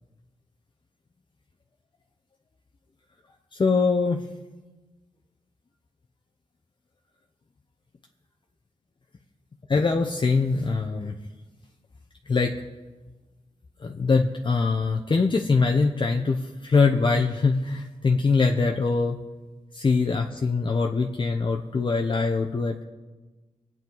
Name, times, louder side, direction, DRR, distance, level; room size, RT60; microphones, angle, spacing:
voice 1, 3.5-4.3 9.7-11.1 12.3-12.6 13.8-19.2 19.7-22.8, left 4 dB, 40° left, 2 dB, 0.9 m, -23 dB
25.0 x 9.0 x 4.0 m, 1.2 s
wide cardioid pair, 105°, 13 cm